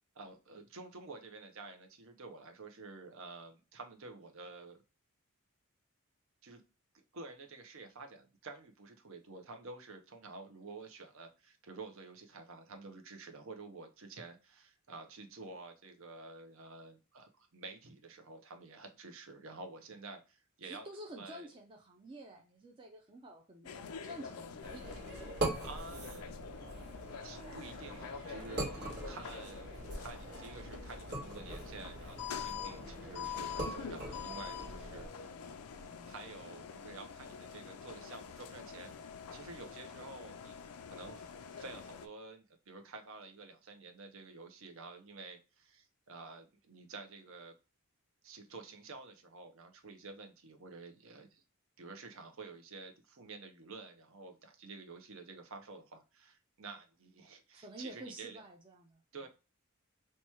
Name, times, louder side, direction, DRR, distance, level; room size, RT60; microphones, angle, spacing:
voice 1, 0.1-4.8 6.4-6.6 6.9-20.9 21.2-21.5 25.6-26.4 27.2-28.6 28.9-35.1 36.0-38.9 39.3-47.5 48.2-51.4 51.8-58.4 59.1-59.3, right 3 dB, 65° right, 5 dB, 0.7 m, -50 dB
voice 2, 20.6-25.3 34.6-36.1 57.5-59.3, right 1 dB, 25° right, 1 dB, 0.5 m, -51 dB
sound 1, 23.6-42.1, left 7 dB, 85° left, 0.4 m, -46 dB
sound 2, 24.6-35.1, right 1 dB, 50° right, 1.4 m, -42 dB
2.9 x 2.3 x 4.2 m, 0.31 s
head